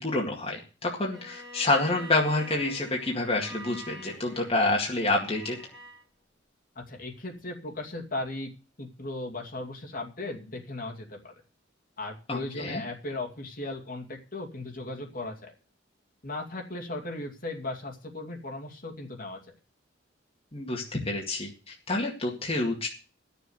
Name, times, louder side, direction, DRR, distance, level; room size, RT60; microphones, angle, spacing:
voice 1, 0.0-5.6 12.3-12.8 20.5-22.9, left 2 dB, 30° left, -1 dB, 2.1 m, -28 dB
Bowed string instrument, 1.1-6.0, equal, ahead, 3.5 m, -46 dB
voice 2, 6.8-8.5 8.8-11.3 12.0-15.5 16.2-19.4, left 2 dB, 50° left, 2 dB, 2.5 m, -37 dB
12.0 x 6.9 x 8.0 m, 0.36 s
head